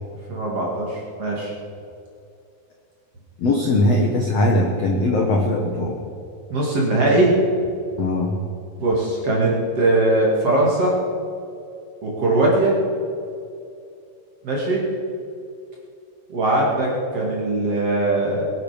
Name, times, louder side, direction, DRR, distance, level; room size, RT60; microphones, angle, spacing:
voice 1, 0.3-1.5 6.5-7.3 8.8-10.9 12.0-12.8 14.4-14.8 16.3-18.4, right 2 dB, 40° right, -3 dB, 2.9 m, -20 dB
voice 2, 3.4-6.0 8.0-8.4, left 1 dB, 75° left, 0 dB, 1.4 m, -20 dB
21.5 x 10.5 x 5.2 m, 2.5 s
omnidirectional pair, 5.1 m